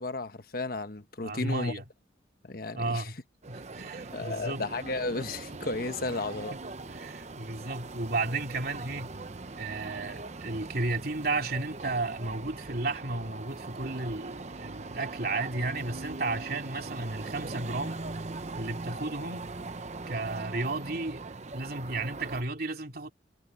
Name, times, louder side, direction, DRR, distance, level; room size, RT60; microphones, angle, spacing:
voice 1, 0.0-1.7 2.4-3.1 4.1-6.5, left 2 dB, 55° left, 1.2 m, -33 dB
voice 2, 1.2-1.8 2.7-3.2 3.5-4.6 6.0-6.1 6.5-6.6 6.9-9.1 9.6-18.0 18.5-19.5 20.1-23.1, right 2 dB, 55° right, 3.1 m, -33 dB
sound 1, 3.4-22.4, right 3 dB, 40° right, 0.8 m, -41 dB
head